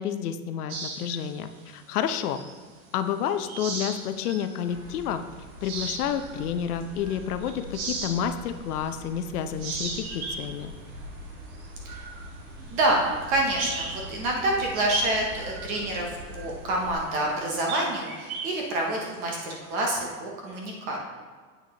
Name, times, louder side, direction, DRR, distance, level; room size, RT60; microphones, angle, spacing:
voice 1, 0.0-2.4 2.9-5.2 5.6-10.7, left 9 dB, 75° left, 9 dB, 0.7 m, -30 dB
sound 1, 0.7-2.9 3.2-4.6 5.0-5.1 5.5-9.2 9.5-14.1 14.3-14.5 15.0-20.1, right 4 dB, 65° right, 1.4 m, -38 dB
sound 2, 4.6-17.0, equal, 85° right, 2.1 m, -43 dB
voice 2, 12.7-16.1 16.3-21.0, right 1 dB, 20° right, -1 dB, 0.6 m, -27 dB
8.1 x 5.9 x 2.9 m, 1.5 s
supercardioid pair, 165°, 45 cm